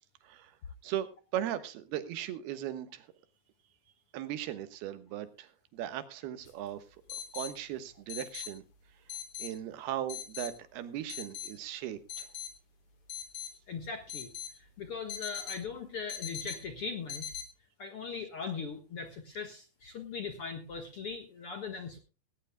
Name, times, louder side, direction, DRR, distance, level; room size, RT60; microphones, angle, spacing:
voice 1, 1.3-3.1 4.1-6.8 7.1-8.6 9.4-12.3, right 11 dB, 85° right, 12 dB, 3.3 m, -38 dB
sound 1, 6.5-6.6 7.1-7.5 8.1-8.5 9.1-9.5 10.1-10.5 11.1-11.5 12.1-12.5 13.1-13.5 14.1-14.5 15.1-15.7 16.1-16.6 17.1-17.4, left 9 dB, 75° left, 4.9 m, -40 dB
voice 2, 13.7-17.2 17.8-22.0, left 5 dB, 55° left, 6 dB, 1.6 m, -40 dB
17.5 x 17.5 x 2.2 m, 0.30 s
omnidirectional pair, 4.4 m